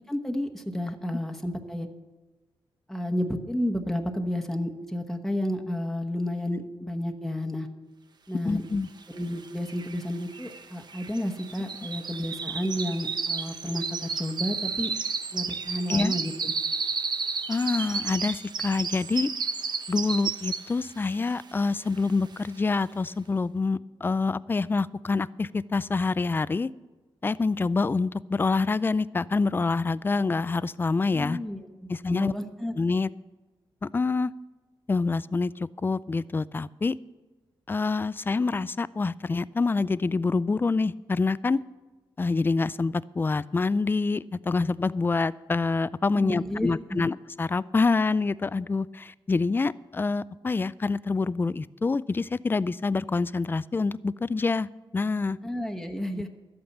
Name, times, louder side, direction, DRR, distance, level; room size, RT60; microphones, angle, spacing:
voice 1, 0.1-1.9 2.9-7.7 8.3-8.7 9.1-14.9 15.3-16.5 31.1-31.7 32.1-32.7 46.2-47.0 55.4-56.3, left 1 dB, 5° left, 3 dB, 1.1 m, -31 dB
voice 2, 8.5-8.9 15.9-16.2 17.5-19.3 19.9-26.7 27.2-31.4 31.9-32.3 32.8-33.1 33.8-34.3 34.9-37.0 37.7-41.6 42.2-54.7 54.9-55.4, left 4 dB, 20° left, 19 dB, 0.3 m, -26 dB
sound 1, 9.2-9.3 9.4-20.9 21.3-21.6 22.0-22.1, right 5 dB, 50° right, 0.8 m, -32 dB
12.0 x 8.6 x 7.2 m, 1.2 s
cardioid pair, 90°, 9 cm